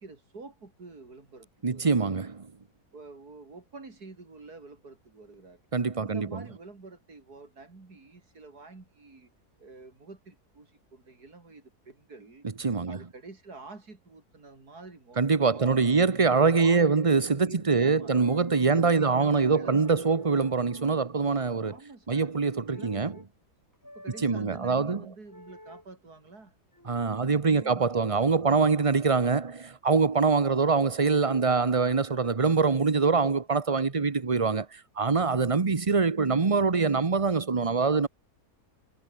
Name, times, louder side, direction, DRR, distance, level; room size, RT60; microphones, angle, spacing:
voice 1, 0.0-2.1 2.9-5.6 6.0-9.3 9.6-12.5 12.9-16.1 16.5-18.2 18.7-20.2 21.6-22.3 22.7-23.3 23.9-26.5 27.2-28.6, right 3 dB, 80° right, 4.5 m, -48 dB
voice 2, 1.6-2.5 5.7-6.4 12.6-13.0 15.2-21.8 22.1-23.1 24.2-25.0 26.9-38.1, right 4 dB, 25° right, 0.9 m, -24 dB
sound 1, 17.8-18.9 19.4-21.1 22.7-23.3 23.8-24.4 25.3-25.8 26.7-27.0, left 1 dB, 10° left, 4.2 m, -46 dB
omnidirectional pair, 1.6 m